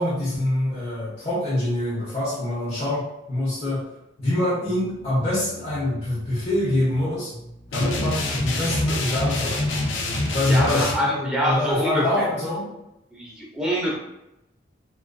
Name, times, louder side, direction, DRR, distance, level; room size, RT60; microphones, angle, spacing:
voice 1, 0.0-3.8 4.2-7.3 7.7-9.7 10.3-12.6, left 1 dB, 30° left, -10 dB, 0.7 m, -25 dB
sound 1, 4.6-10.0, equal, 45° right, 0.6 m, -43 dB
sound 2, 7.7-11.0, left 2 dB, 80° left, 0.5 m, -26 dB
voice 2, 10.5-12.3 13.1-13.9, equal, 5° right, -5 dB, 0.6 m, -25 dB
2.4 x 2.3 x 2.2 m, 0.89 s
head